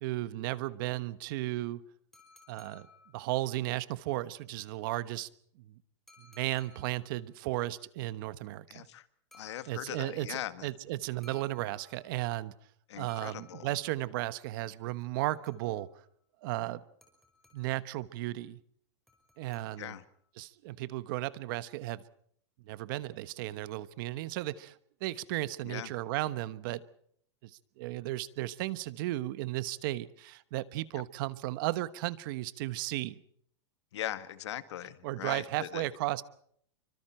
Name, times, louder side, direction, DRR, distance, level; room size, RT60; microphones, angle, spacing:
voice 1, 0.0-1.8 2.5-2.9 3.1-5.3 6.3-8.9 9.7-12.5 12.9-15.9 16.4-16.8 17.5-18.6 19.4-20.0 20.4-22.0 22.7-24.7 25.0-26.8 27.4-27.5 27.8-33.2 35.0-36.2, right 16 dB, 45° right, 16 dB, 1.2 m, -35 dB
sound 1, 2.1-3.6 6.1-7.2 9.3-10.2 11.2-12.3 13.1-14.1 15.0-16.0 17.0-17.9 19.1-20.2, left 4 dB, ahead, 5.4 m, -60 dB
voice 2, 8.7-9.0 9.3-10.7 12.9-13.7 19.8-20.0 25.6-25.9 33.9-35.8, left 12 dB, 70° left, 12 dB, 1.8 m, -40 dB
29.0 x 25.0 x 4.4 m, 0.65 s
supercardioid pair, 160°, 15 cm